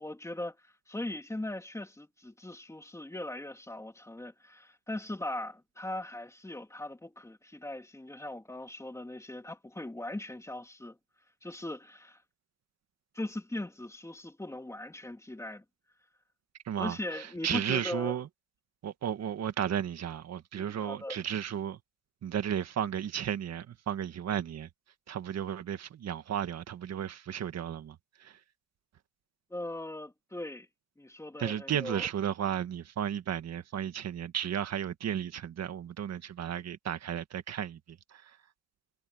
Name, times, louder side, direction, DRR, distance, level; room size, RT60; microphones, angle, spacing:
voice 1, 0.0-11.0 11.4-12.2 13.1-15.6 16.8-18.2 20.5-21.2 29.5-30.7 31.0-32.1, left 1 dB, 5° left, 2.7 m, -39 dB
voice 2, 16.6-18.3 18.8-21.8 22.2-24.7 25.1-28.4 31.4-38.4, right 9 dB, 35° right, 1.8 m, -34 dB
supercardioid pair, 125°, 46 cm